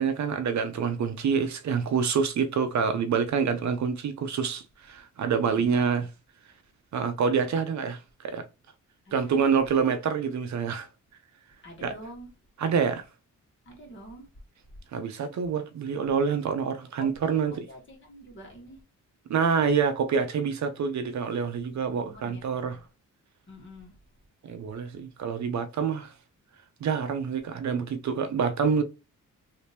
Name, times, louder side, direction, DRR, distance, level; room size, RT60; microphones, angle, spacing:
voice 1, 0.0-6.0 6.9-8.0 8.2-8.4 9.1-10.9 11.8-11.9 12.6-13.0 14.9-17.6 19.3-22.8 24.4-26.1 26.8-28.8, right 6 dB, 60° right, 0.6 m, -27 dB
voice 2, 5.6-6.1 9.1-9.6 11.6-12.3 13.7-14.3 17.0-18.8 22.0-22.9 23.5-23.9, equal, 35° left, 1.8 m, -46 dB
3.3 x 2.8 x 3.3 m
cardioid pair, 90°, 32 cm